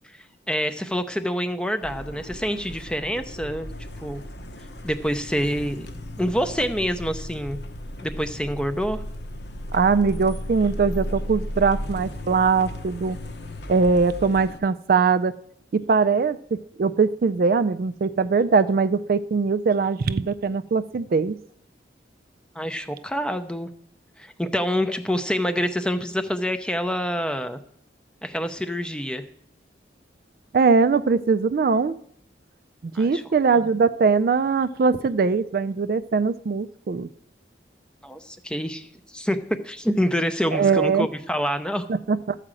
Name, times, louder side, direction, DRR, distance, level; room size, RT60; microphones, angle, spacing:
voice 1, 0.5-3.7 4.0-4.2 4.8-5.9 6.2-7.6 8.0-9.0 22.6-23.7 24.2-27.6 28.2-29.2 32.9-33.2 33.5-33.7 38.0-39.4 39.6-41.8, equal, 5° left, 9 dB, 0.5 m, -26 dB
sound 1, 1.8-14.6, left 1 dB, 70° left, 1.0 m, -35 dB
voice 2, 9.7-13.2 13.7-15.3 15.7-21.4 30.5-32.0 32.8-37.1 40.5-41.1 41.9-42.4, right 5 dB, 50° right, 12 dB, 0.3 m, -21 dB
13.0 x 4.9 x 7.6 m, 0.68 s
head